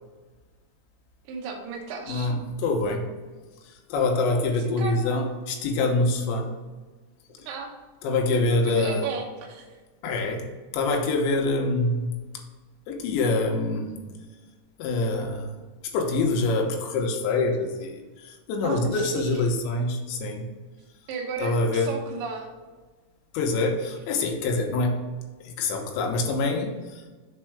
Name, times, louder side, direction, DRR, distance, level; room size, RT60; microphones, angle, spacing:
voice 1, 1.3-2.3 4.6-5.3 7.4-7.7 8.6-9.7 18.6-19.4 21.1-22.5, right 5 dB, 80° right, 1 dB, 2.0 m, -34 dB
voice 2, 2.6-3.1 3.6-6.5 8.0-9.0 10.0-10.5 10.7-12.2 12.9-14.0 14.8-15.5 15.9-20.5 21.4-21.9 23.3-25.0 25.4-27.0, left 2 dB, 80° left, 3 dB, 3.2 m, -25 dB
6.6 x 4.6 x 4.9 m, 1.3 s
omnidirectional pair, 5.3 m